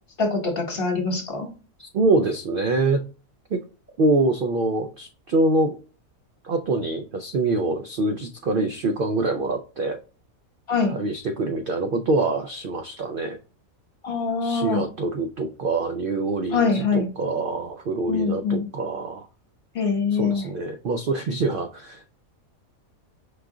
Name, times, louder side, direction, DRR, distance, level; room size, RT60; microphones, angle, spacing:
voice 1, 0.2-1.5 10.7-11.0 14.0-14.8 16.5-17.0 18.1-18.7 19.7-20.4, left 4 dB, 45° left, 2 dB, 1.3 m, -24 dB
voice 2, 1.8-3.0 3.5-3.6 4.0-5.7 6.4-10.0 10.9-13.4 14.4-19.3 20.1-22.2, right 2 dB, 80° right, 6 dB, 0.4 m, -25 dB
4.9 x 2.4 x 3.6 m, 0.35 s
omnidirectional pair, 1.5 m